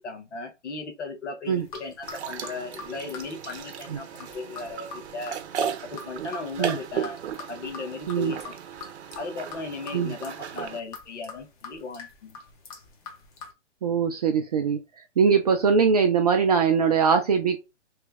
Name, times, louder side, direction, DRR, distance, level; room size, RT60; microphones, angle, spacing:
voice 1, 0.0-5.4 5.8-7.2 7.5-8.5 9.1-12.4, left 3 dB, 75° left, 1.2 m, -37 dB
sound 1, 1.5-13.5, left 4 dB, 30° left, 0.9 m, -44 dB
sound 2, 2.0-10.8, right 8 dB, 65° right, 0.7 m, -36 dB
voice 2, 13.8-14.8 15.2-17.6, right 6 dB, 35° right, 0.4 m, -21 dB
3.1 x 2.2 x 3.3 m
hypercardioid pair, 135°, 36 cm